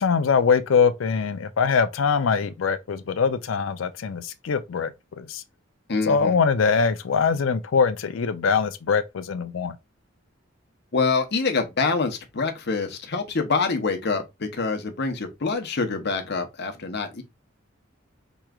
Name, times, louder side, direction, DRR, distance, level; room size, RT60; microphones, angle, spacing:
voice 1, 0.0-5.4 6.0-9.8, left 5 dB, 85° left, 0.5 m, -23 dB
voice 2, 5.9-6.4 10.9-17.2, left 4 dB, 60° left, 0.8 m, -26 dB
4.6 x 3.1 x 2.3 m
head